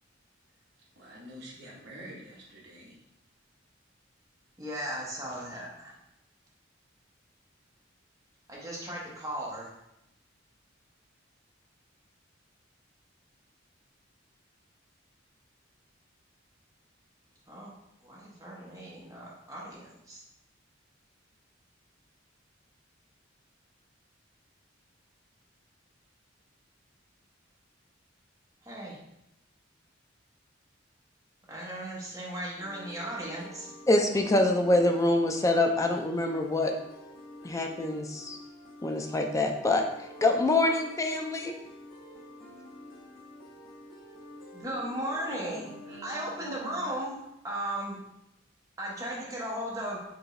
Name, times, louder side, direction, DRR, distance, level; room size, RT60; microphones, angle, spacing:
voice 1, 1.0-3.0 5.5-5.6 45.3-46.9, right 1 dB, 60° right, -3 dB, 1.1 m, -47 dB
voice 2, 4.6-5.9 8.5-9.7 17.5-17.7 18.0-20.2 28.6-29.0 31.5-33.7 44.5-47.2 47.4-48.0 48.8-50.0, right 1 dB, 15° right, -5 dB, 1.0 m, -36 dB
sound 1, 32.6-47.0, left 1 dB, 50° left, 1.2 m, -49 dB
voice 3, 33.9-36.7 37.4-38.4 38.8-41.5, left 2 dB, 15° left, 4 dB, 0.3 m, -25 dB
4.7 x 2.6 x 3.1 m, 0.86 s
head